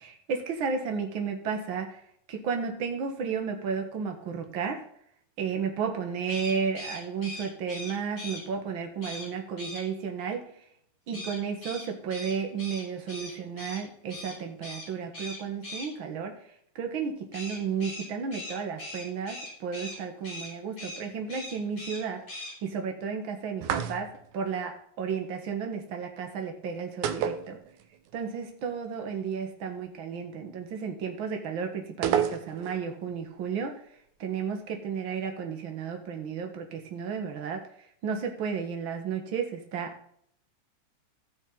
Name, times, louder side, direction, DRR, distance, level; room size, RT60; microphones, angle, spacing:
voice 1, 0.0-2.0 2.3-4.8 5.4-10.5 11.1-16.4 16.8-27.6 28.1-33.7 34.2-37.7 38.0-39.9, right 6 dB, 50° right, 4 dB, 1.9 m, -33 dB
sound 1, 6.2-8.4 9.0-9.3 9.6-9.8 11.1-13.8 14.1-14.3 14.6-14.9 15.1-15.9 17.3-20.0 20.2-20.5 20.8-21.0 21.3-22.0 22.3-22.5, left 1 dB, 25° left, 4.3 m, -40 dB
sound 2, 23.6-24.3 27.0-28.1 28.3-28.4 32.0-32.8, right 9 dB, 80° right, 2.2 m, -29 dB
15.0 x 6.4 x 4.0 m, 0.67 s
omnidirectional pair, 3.5 m